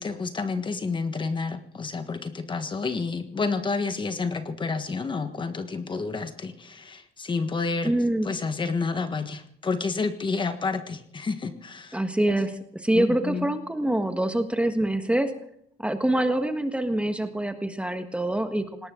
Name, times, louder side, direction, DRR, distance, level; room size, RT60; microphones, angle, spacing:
voice 1, 0.0-7.9 8.2-12.0 12.9-13.5, left 4 dB, 30° left, 9 dB, 1.5 m, -29 dB
voice 2, 7.8-8.3 11.9-15.3 15.8-18.9, right 1 dB, 5° right, 7 dB, 1.5 m, -25 dB
19.0 x 18.5 x 3.8 m, 0.70 s
cardioid pair, 110°, 17 cm